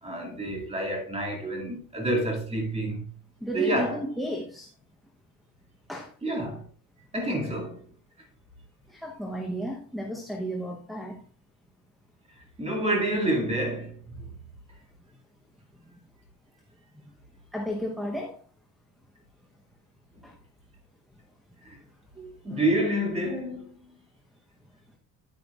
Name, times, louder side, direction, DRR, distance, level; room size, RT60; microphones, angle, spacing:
voice 1, 0.0-3.0 3.5-4.1 6.2-6.7 7.1-7.8 12.3-14.4 21.6-21.8 22.2-24.0, right 1 dB, 15° right, 2.2 m, -29 dB
voice 2, 3.4-4.7 5.9-6.1 8.9-11.2 17.5-18.4 20.2-20.3, equal, ahead, 0.8 m, -33 dB
9.6 x 9.1 x 2.4 m
cardioid pair, 155°, 39 cm